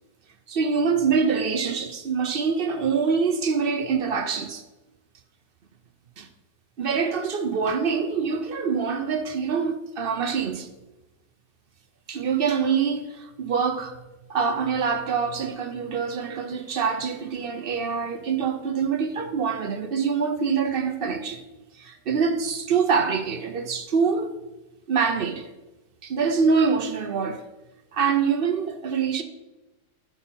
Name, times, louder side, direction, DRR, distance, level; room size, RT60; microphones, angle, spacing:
voice 1, 0.5-4.6 6.2-6.3 6.8-10.7 12.1-14.0 14.3-21.4 21.8-24.3 24.9-25.5 26.0-27.4 27.9-29.2, right 5 dB, 55° right, 0.6 m, -25 dB
11.0 x 5.7 x 4.4 m
omnidirectional pair, 1.8 m